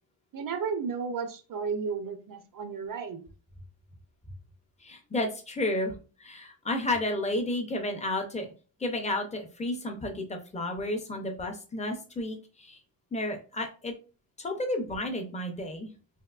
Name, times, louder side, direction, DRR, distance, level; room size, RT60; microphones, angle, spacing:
voice 1, 0.3-3.2, right 5 dB, 50° right, 9 dB, 0.5 m, -33 dB
voice 2, 4.8-5.9 6.2-8.5 8.8-12.8 13.1-13.9 14.4-15.9, left 1 dB, 15° left, 3 dB, 0.5 m, -32 dB
3.5 x 2.6 x 2.3 m, 0.36 s
wide cardioid pair, 165°, 46 cm